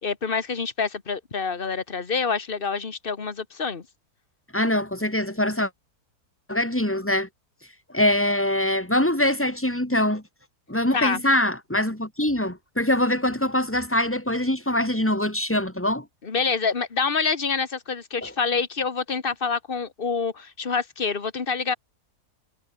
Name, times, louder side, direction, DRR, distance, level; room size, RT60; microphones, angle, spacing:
voice 1, 0.0-3.8 10.9-11.2 16.2-21.7, left 5 dB, 35° left, 1.7 m, -27 dB
voice 2, 4.5-5.7 6.5-7.3 7.9-10.2 10.7-16.1 18.2-18.3, left 1 dB, 10° left, 4.0 m, -23 dB
omnidirectional pair, 1.6 m